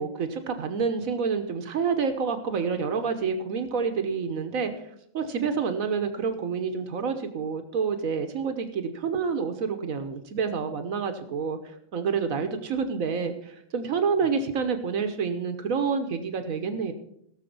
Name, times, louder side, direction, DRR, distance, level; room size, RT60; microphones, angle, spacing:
voice 1, 0.0-16.9, right 5 dB, 85° right, 8 dB, 1.5 m, -28 dB
16.5 x 7.0 x 5.3 m, 0.73 s
omnidirectional pair, 1.4 m